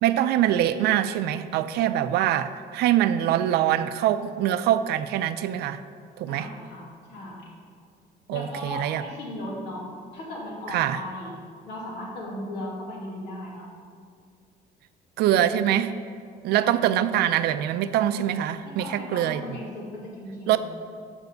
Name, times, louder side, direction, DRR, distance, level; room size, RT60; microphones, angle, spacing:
voice 1, 0.0-5.8 6.2-6.5 8.3-9.0 10.7-11.0 15.2-16.0 16.4-19.6 20.5-20.6, right 11 dB, 75° right, 12 dB, 0.4 m, -24 dB
voice 2, 6.3-7.5 8.3-11.3 11.6-13.7 16.6-16.9 18.6-20.7, left 1 dB, 85° left, -4 dB, 2.3 m, -37 dB
6.9 x 5.3 x 6.7 m, 2.3 s
cardioid pair, 110°, 17 cm